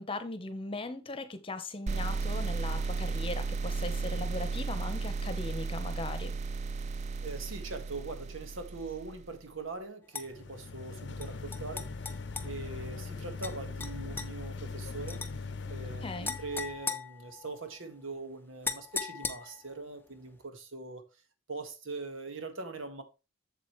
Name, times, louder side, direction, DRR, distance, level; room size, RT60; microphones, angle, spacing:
voice 1, 0.0-6.4 16.0-16.4, left 2 dB, 25° left, 1.0 m, -38 dB
sound 1, 1.9-9.4, right 4 dB, 35° right, 0.4 m, -34 dB
voice 2, 7.2-11.9 12.4-15.2 15.7-21.1 21.5-23.0, right 3 dB, 80° right, 1.6 m, -42 dB
sound 2, 10.1-10.3 11.2-12.5 13.4-13.5 13.8-14.3 15.1-15.3 16.2-17.7 18.6-19.7, left 4 dB, 10° left, 0.6 m, -38 dB
sound 3, 10.2-16.8, left 4 dB, 60° left, 0.7 m, -40 dB
7.6 x 7.4 x 3.2 m
head